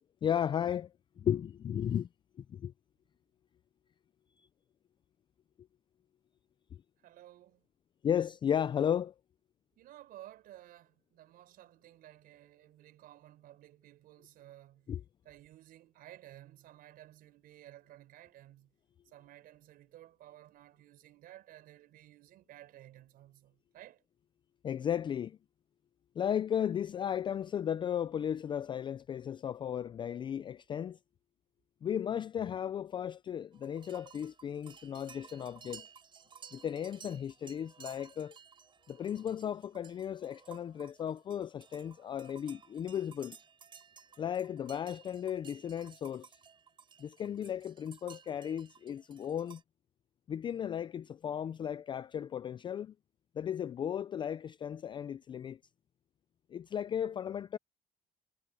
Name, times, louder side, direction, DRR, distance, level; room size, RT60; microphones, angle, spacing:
voice 1, 0.2-0.9 1.2-2.1 2.5-2.7 8.0-9.1 14.9-15.0 24.6-25.4 26.2-31.0 31.8-35.8 36.5-38.4 38.9-43.4 44.2-46.3 47.0-49.6 50.3-52.9 53.4-55.6 56.5-57.6, left 9 dB, 30° left, 0.4 m, -35 dB
voice 2, 7.0-7.6 9.8-14.9 15.2-18.7 19.0-24.0, right 13 dB, 65° right, 5.1 m, -55 dB
sound 1, 33.5-49.6, right 6 dB, 30° right, 5.9 m, -56 dB
cardioid pair, 150°, 16 cm